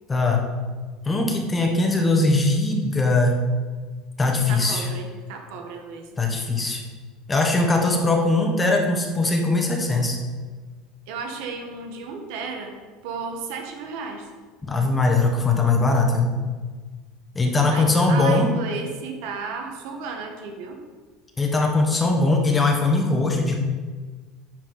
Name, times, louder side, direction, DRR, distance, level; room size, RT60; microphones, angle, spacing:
voice 1, 0.1-0.5 1.0-3.4 4.2-4.9 6.2-6.8 7.3-10.2 14.6-16.3 17.3-18.5 21.4-23.6, left 2 dB, 15° left, 2 dB, 1.3 m, -20 dB
voice 2, 4.5-6.1 11.1-12.7 13.0-14.3 17.7-20.8, right 5 dB, 75° right, 3 dB, 1.3 m, -33 dB
10.5 x 4.6 x 4.0 m, 1.4 s
supercardioid pair, 120°, 0 cm